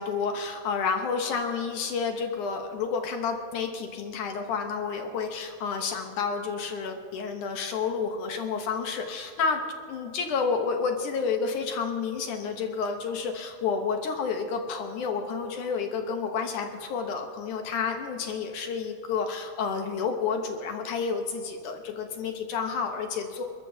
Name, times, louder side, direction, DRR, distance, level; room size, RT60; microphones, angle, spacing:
voice 1, 0.0-9.6 9.9-23.4, left 5 dB, 70° left, 4 dB, 2.3 m, -30 dB
29.0 x 13.5 x 2.8 m, 2.4 s
omnidirectional pair, 4.1 m